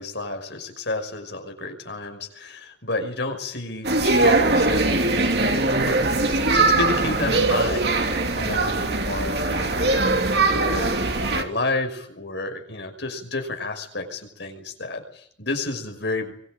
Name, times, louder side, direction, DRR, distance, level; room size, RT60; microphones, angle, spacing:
voice 1, 0.0-16.3, left 2 dB, 65° left, 5 dB, 5.7 m, -31 dB
sound 1, 3.8-11.4, right 2 dB, 55° right, 2.9 m, -21 dB
25.0 x 21.0 x 9.1 m, 0.64 s
head